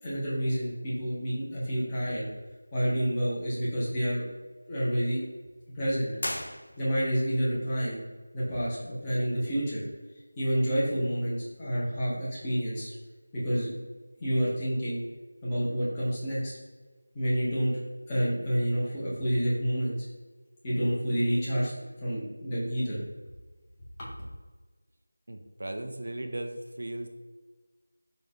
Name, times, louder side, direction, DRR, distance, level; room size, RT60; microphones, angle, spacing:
voice 1, 0.0-2.3 2.7-4.2 4.7-5.2 5.7-6.1 6.8-8.0 8.3-9.8 10.4-12.9 13.3-13.7 14.2-15.0 15.4-16.6 17.1-17.8 18.1-20.0 20.6-21.7 22.0-23.0 24.0-24.1, equal, 15° left, -8 dB, 1.0 m, -28 dB
sound 1, 6.2-7.2, left 1 dB, 65° left, 0.5 m, -36 dB
voice 2, 25.3-27.1, right 1 dB, 65° right, 4 dB, 0.4 m, -37 dB
3.9 x 2.5 x 3.6 m, 1.3 s
figure-of-eight pair, 170°, 0 cm